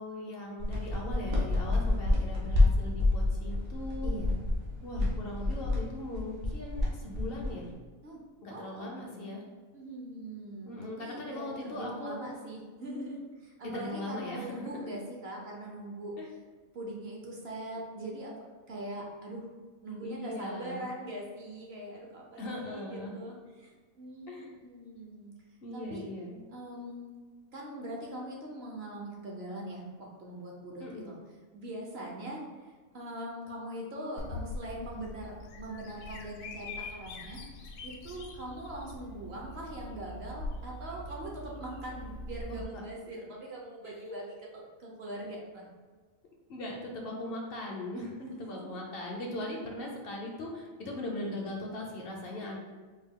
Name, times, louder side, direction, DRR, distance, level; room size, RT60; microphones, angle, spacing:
voice 1, 0.0-4.1 4.8-7.7 8.4-9.4 10.6-12.3 13.7-14.9 16.2-16.3 20.0-20.9 22.4-23.1 24.3-24.5 25.6-26.4 30.8-31.1 42.5-42.8 43.8-44.2 46.5-48.1 48.4-52.6, left 1 dB, 55° left, 0 dB, 0.7 m, -39 dB
sound 1, 0.6-7.7, left 2 dB, 75° right, 1.3 m, -28 dB
voice 2, 4.0-4.4 8.0-8.2 8.5-9.4 9.7-16.1 16.7-19.5 19.8-25.3 25.7-26.0 26.5-27.2 27.5-31.2 31.5-45.7 48.2-48.6 52.4-52.5, right 1 dB, 55° right, -2 dB, 0.9 m, -42 dB
Bird vocalization bird call bird song, 34.2-42.6, left 1 dB, 80° left, 1.0 m, -43 dB
4.3 x 2.2 x 3.6 m, 1.4 s
omnidirectional pair, 1.4 m